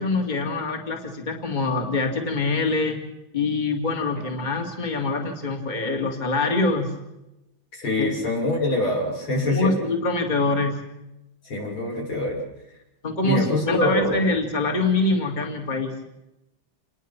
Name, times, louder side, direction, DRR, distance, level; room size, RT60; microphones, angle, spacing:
voice 1, 0.0-3.0 3.3-6.9 8.0-8.1 9.4-10.8 13.0-15.9, left 3 dB, 20° left, 3 dB, 2.5 m, -24 dB
voice 2, 4.2-4.5 7.7-9.8 11.5-12.4 13.2-14.2, left 1 dB, 85° left, -1 dB, 7.0 m, -25 dB
28.0 x 20.5 x 6.1 m, 0.92 s
omnidirectional pair, 2.2 m